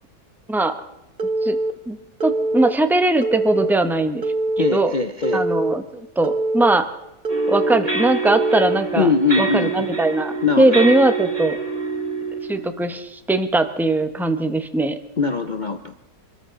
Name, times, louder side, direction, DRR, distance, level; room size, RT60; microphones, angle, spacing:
Telephone, 1.2-1.7 2.2-2.7 3.2-3.7 4.2-4.7 5.2-5.7 6.2-6.8 7.2-7.8 8.3-8.8, right 2 dB, 35° right, 1.1 m, -23 dB
voice 1, 2.2-4.2 4.6-5.0 5.3-6.9 7.5-9.1 9.4-11.6 12.5-15.0, right 2 dB, ahead, 9 dB, 0.5 m, -20 dB
voice 2, 4.6-5.4 9.0-9.9 10.4-10.9 15.2-15.9, left 4 dB, 80° left, 8 dB, 0.4 m, -22 dB
sound 1, 7.3-12.7, right 4 dB, 20° right, 4.3 m, -26 dB
26.5 x 13.5 x 3.8 m, 0.89 s
omnidirectional pair, 1.9 m